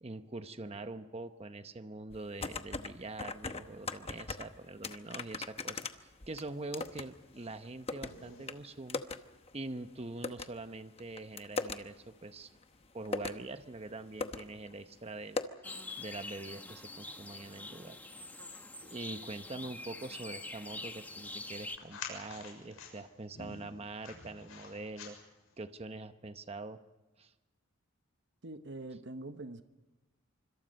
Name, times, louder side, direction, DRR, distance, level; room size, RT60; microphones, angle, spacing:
voice 1, 0.0-9.0 9.5-12.5 12.9-15.4 16.0-18.0 18.8-25.2 25.6-26.8 27.2-27.3, right 2 dB, 30° right, 10 dB, 0.8 m, -44 dB
sound 1, 2.1-2.9 3.2-4.5 4.8-7.1 7.4-8.1 8.5-8.6 8.9-9.2 9.5-9.6 10.2-10.5 11.0-11.8 12.6-12.7 13.0-13.4 13.9-14.0 14.2-14.4 14.7-14.8 15.4-15.5, left 3 dB, 30° left, 0.9 m, -38 dB
sound 2, 6.2-25.6, left 5 dB, 70° left, 7.0 m, -55 dB
sound 3, 15.6-21.8, left 2 dB, 10° left, 1.1 m, -45 dB
voice 2, 28.4-29.6, right 2 dB, 55° right, 9 dB, 1.0 m, -44 dB
25.5 x 25.5 x 5.3 m, 1.1 s
head